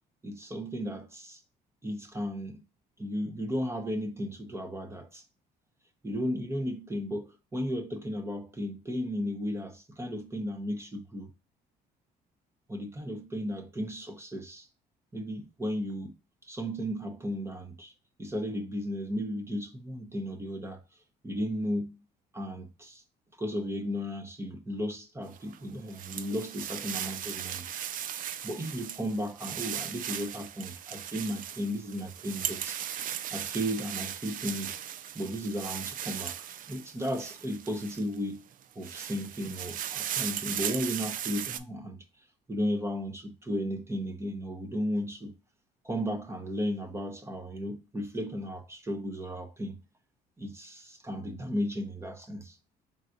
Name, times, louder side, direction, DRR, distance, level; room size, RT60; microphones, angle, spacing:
voice 1, 0.2-1.4 1.8-2.6 3.0-5.2 6.0-11.3 12.7-14.7 15.1-16.1 16.4-17.9 18.2-20.8 21.2-22.0 22.3-23.0 23.4-27.7 28.4-32.8 33.3-34.8 35.1-36.4 36.7-38.5 38.8-42.0 42.5-45.3 45.8-49.8 50.4-52.6, equal, 15° right, 0.9 m, -34 dB
sound 1, 25.3-38.2 38.6-41.6, right 10 dB, 55° right, 0.4 m, -37 dB
4.4 x 3.9 x 2.5 m
cardioid pair, 110°, 17 cm